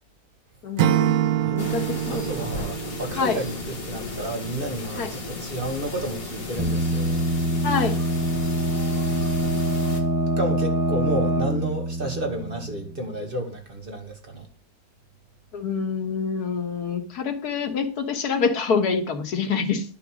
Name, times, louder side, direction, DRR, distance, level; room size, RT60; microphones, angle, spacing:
voice 1, 0.6-2.3 3.2-3.4 5.0-5.1 7.6-8.0 15.5-19.8, left 5 dB, 90° left, 1.8 m, -26 dB
Acoustic guitar / Strum, 0.8-3.9, right 11 dB, 75° right, 1.1 m, -25 dB
sound 1, 1.6-10.0, left 3 dB, 40° left, 1.9 m, -35 dB
voice 2, 2.1-7.3 10.4-14.5, right 1 dB, 35° right, 2.2 m, -31 dB
sound 2, 6.6-13.2, right 1 dB, 15° right, 0.7 m, -25 dB
11.5 x 4.0 x 6.2 m
omnidirectional pair, 1.6 m